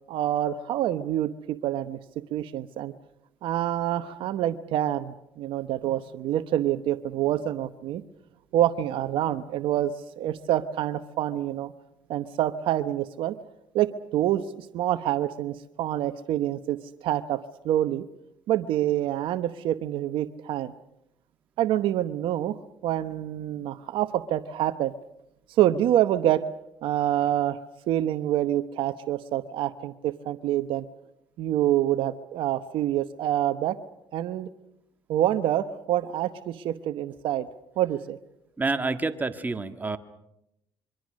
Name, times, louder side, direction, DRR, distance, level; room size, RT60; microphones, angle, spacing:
voice 1, 0.1-2.9 3.4-8.0 8.5-11.7 12.1-13.4 13.7-18.1 18.5-20.7 21.6-22.6 22.8-24.9 25.5-26.4 26.8-27.6 27.9-30.8 31.4-33.8 34.1-34.5 35.1-37.5 37.8-38.2, right 12 dB, 75° right, 12 dB, 1.0 m, -26 dB
voice 2, 38.6-40.0, right 3 dB, 20° right, 8 dB, 1.8 m, -28 dB
26.0 x 24.0 x 6.4 m, 0.81 s
supercardioid pair, 85°, 9 cm